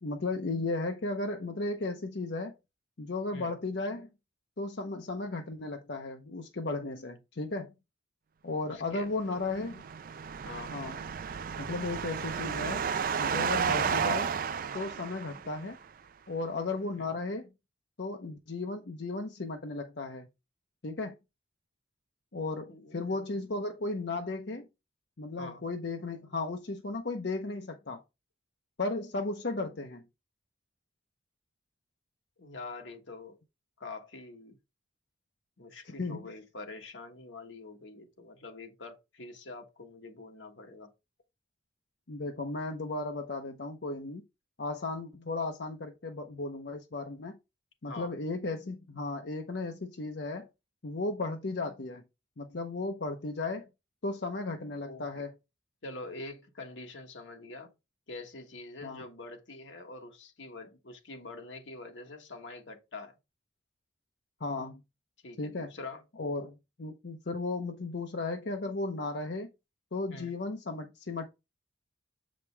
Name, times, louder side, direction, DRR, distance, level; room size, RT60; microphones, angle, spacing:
voice 1, 0.0-2.6 3.0-4.1 4.6-7.7 8.4-9.8 10.7-11.0 11.6-12.8 13.2-14.3 14.7-15.8 16.3-17.5 18.0-20.3 20.8-21.2 22.3-24.7 25.2-28.0 28.8-30.0 35.8-36.2 42.1-44.2 44.6-47.4 47.8-50.5 50.8-52.0 52.4-53.7 54.0-55.3 58.8-59.0 64.4-64.8 65.4-65.7 66.2-69.5 69.9-71.2, left 3 dB, 60° left, 0.7 m, -35 dB
voice 2, 8.6-9.5 10.4-10.8 13.8-13.9 17.0-17.1 22.7-23.3 25.4-25.6 32.4-33.4 33.8-34.6 35.6-40.9 47.9-48.1 54.8-55.3 55.8-57.7 58.1-63.1 65.2-66.0 70.1-70.4, left 3 dB, 80° left, 1.4 m, -45 dB
sound 1, 9.4-15.7, right 6 dB, 45° right, 0.3 m, -32 dB
7.1 x 5.1 x 3.3 m
head